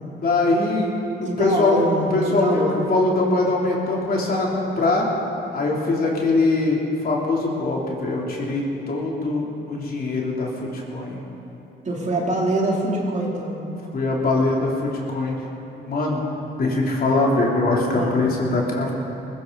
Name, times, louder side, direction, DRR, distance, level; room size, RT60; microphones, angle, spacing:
voice 1, 0.1-1.8 2.1-5.1 5.5-11.2 13.9-15.3 15.9-16.2 16.6-18.9, left 2 dB, 50° left, -3 dB, 3.3 m, -22 dB
voice 2, 1.2-2.9 11.8-13.6 17.9-18.2, right 1 dB, 35° right, -2 dB, 3.2 m, -24 dB
20.0 x 16.0 x 4.1 m, 3.0 s
cardioid pair, 90°, 20 cm